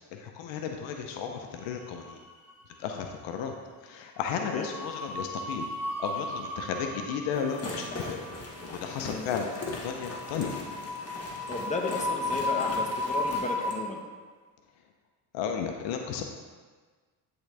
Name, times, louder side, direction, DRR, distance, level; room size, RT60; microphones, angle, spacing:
voice 1, 0.1-2.2 2.8-3.5 3.8-5.7 6.0-8.2 8.7-10.5 15.3-16.2, left 7 dB, 80° left, 4 dB, 0.7 m, -34 dB
sound 1, 1.7-2.5 2.8-3.0 4.2-13.8, left 2 dB, 5° right, 2.0 m, -35 dB
sound 2, 7.3-13.8, left 2 dB, 35° left, 1.6 m, -40 dB
voice 2, 11.5-14.0, left 3 dB, 15° left, 1 dB, 1.2 m, -34 dB
10.5 x 3.9 x 3.4 m, 1.5 s
supercardioid pair, 70°, 44 cm